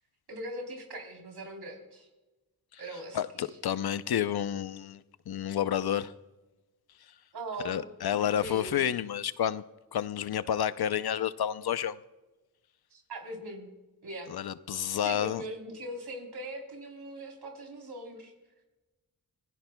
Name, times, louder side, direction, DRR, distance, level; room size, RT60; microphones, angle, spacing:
voice 1, 0.3-2.1 2.8-3.2 7.3-8.8 12.9-13.7 14.0-14.3 15.0-18.3, right 1 dB, 85° right, 3.7 m, -41 dB
voice 2, 3.1-6.1 7.1-7.2 7.6-9.6 9.9-12.0 14.3-15.4, left 10 dB, 75° left, 0.7 m, -30 dB
26.5 x 16.5 x 2.3 m
cardioid pair, 65°, 38 cm